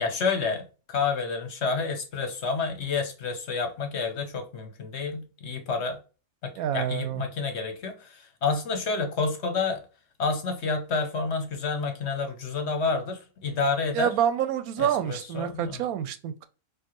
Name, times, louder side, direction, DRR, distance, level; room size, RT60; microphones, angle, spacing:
voice 1, 0.0-6.0 6.4-9.8 10.2-14.1 14.8-15.8, left 4 dB, 55° left, 1.0 m, -29 dB
voice 2, 6.6-7.2 13.9-16.5, right 10 dB, 80° right, 1.1 m, -27 dB
4.6 x 2.5 x 2.9 m
omnidirectional pair, 1.5 m